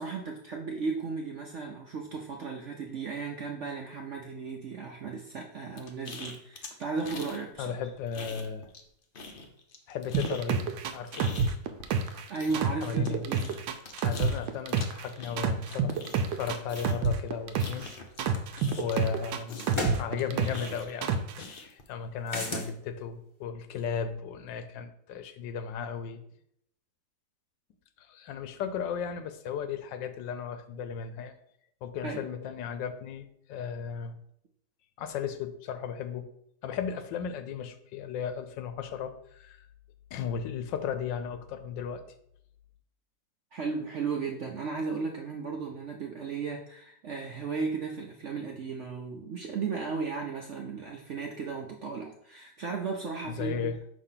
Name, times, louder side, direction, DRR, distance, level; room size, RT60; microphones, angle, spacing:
voice 1, 0.0-7.7 12.3-13.5 32.0-32.2 43.5-53.7, right 4 dB, 65° right, 1 dB, 0.7 m, -35 dB
sound 1, 5.8-7.4 7.7-8.9 9.1-19.1 19.5-21.9, left 3 dB, 60° left, 0.5 m, -44 dB
voice 2, 7.6-8.7 9.9-11.3 12.8-13.3 13.9-16.0 16.3-17.9 18.8-26.2 28.0-31.3 31.8-34.2 35.0-36.3 36.6-39.7 40.1-42.0 53.2-53.8, left 7 dB, 85° left, 9 dB, 1.4 m, -35 dB
sound 2, 10.1-12.2 12.5-15.0 15.4-17.9 18.2-20.7 21.0-21.4, right 6 dB, 85° right, 1.3 m, -28 dB
sound 3, 18.3-18.4 19.7-20.0 22.3-22.7, left 1 dB, 25° left, 0.7 m, -32 dB
6.1 x 2.9 x 5.6 m, 0.71 s
omnidirectional pair, 1.9 m